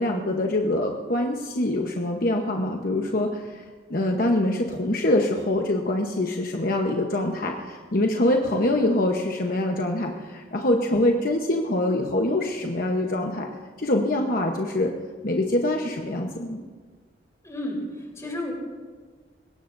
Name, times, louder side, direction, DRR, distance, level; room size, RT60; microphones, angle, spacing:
voice 1, 0.0-3.6 3.9-13.5 13.8-14.9 15.2-16.6, left 1 dB, 50° left, 2 dB, 1.0 m, -24 dB
voice 2, 17.4-18.5, left 1 dB, 15° left, -2 dB, 3.8 m, -32 dB
21.5 x 17.5 x 2.7 m, 1.5 s
head